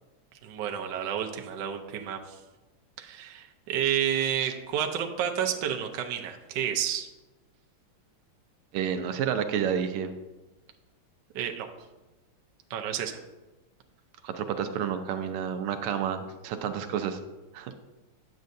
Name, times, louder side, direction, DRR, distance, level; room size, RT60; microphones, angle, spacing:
voice 1, 0.4-2.4 3.0-7.1 11.3-11.7 12.7-13.2, right 9 dB, 65° right, 3 dB, 1.2 m, -30 dB
voice 2, 8.7-10.2 14.2-17.2 17.5-17.7, right 8 dB, 90° right, 8 dB, 1.6 m, -30 dB
9.3 x 7.4 x 2.6 m, 1.1 s
omnidirectional pair, 2.4 m